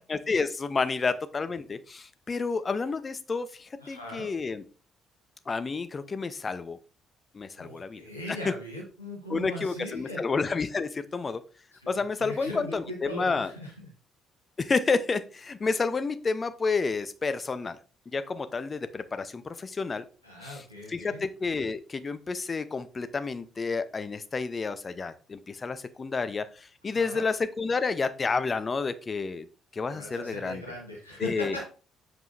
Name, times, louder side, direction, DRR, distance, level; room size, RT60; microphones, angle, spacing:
voice 1, 0.1-4.6 5.5-6.8 7.3-8.0 8.3-8.5 9.3-11.4 11.9-13.5 14.6-17.8 18.1-20.0 20.4-20.6 20.9-29.5 29.7-30.6 31.2-31.6, left 4 dB, 30° left, 12 dB, 0.7 m, -30 dB
voice 2, 3.8-4.3 7.6-10.2 11.7-13.9 20.2-21.2 26.8-27.2 29.9-31.7, left 1 dB, 90° left, -4 dB, 1.2 m, -39 dB
7.7 x 4.8 x 2.6 m, 0.38 s
figure-of-eight pair, 45°, 0 cm